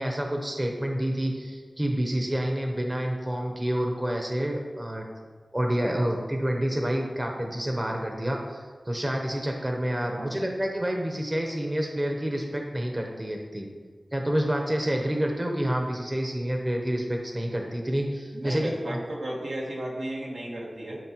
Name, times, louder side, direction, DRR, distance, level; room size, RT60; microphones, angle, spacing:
voice 1, 0.0-5.0 5.5-13.7 14.1-19.0, right 1 dB, 25° right, 1 dB, 0.9 m, -28 dB
voice 2, 10.1-10.6 18.3-21.0, right 1 dB, 85° right, -4 dB, 1.5 m, -34 dB
11.5 x 4.0 x 3.0 m, 1.5 s
wide cardioid pair, 55°, 0 cm